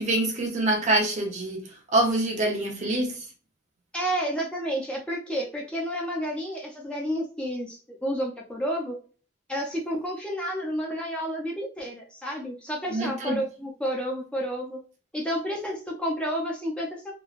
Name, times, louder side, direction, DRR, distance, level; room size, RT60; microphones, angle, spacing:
voice 1, 0.0-1.6 1.9-3.2 12.9-13.4, right 1 dB, 40° right, 0.8 m, -25 dB
voice 2, 3.9-9.0 9.5-14.8 15.1-17.1, equal, 5° left, 0.5 m, -30 dB
3.0 x 2.2 x 2.4 m
head